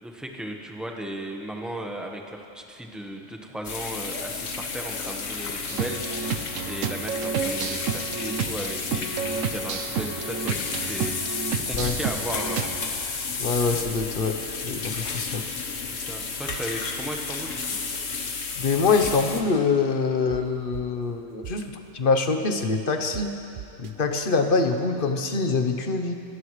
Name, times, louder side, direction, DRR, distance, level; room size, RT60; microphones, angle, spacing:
voice 1, 0.0-6.4 6.7-12.6 15.9-17.6, right 1 dB, ahead, 1 dB, 1.2 m, -36 dB
sound 1, 3.6-19.4, left 4 dB, 70° left, 1.6 m, -32 dB
sound 2, 5.7-12.9, right 6 dB, 80° right, 1.1 m, -31 dB
voice 2, 13.4-15.5 18.6-21.6 21.9-23.3 23.8-26.2, left 4 dB, 45° left, 6 dB, 1.1 m, -24 dB
sound 3, 16.5-16.6 17.0-17.1 19.0-19.4 20.3-20.4 20.7-20.8 21.4-21.7 23.1-23.2 23.6-23.9, right 10 dB, 55° right, 0.6 m, -38 dB
25.0 x 17.0 x 3.3 m, 2.8 s
omnidirectional pair, 1.3 m